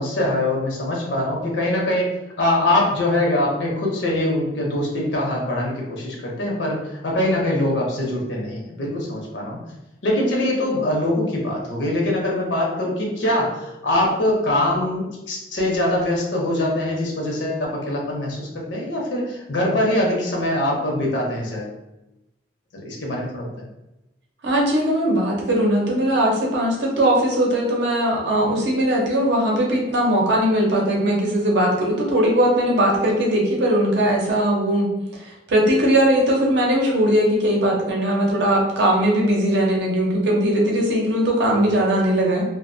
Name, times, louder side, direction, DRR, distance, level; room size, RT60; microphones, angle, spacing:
voice 1, 0.0-2.1 2.4-9.6 10.0-21.7 22.7-23.5, left 1 dB, 80° left, -2 dB, 0.6 m, -23 dB
voice 2, 24.4-34.9 35.5-42.4, right 1 dB, 70° right, -2 dB, 0.6 m, -19 dB
2.4 x 2.0 x 2.5 m, 0.94 s
head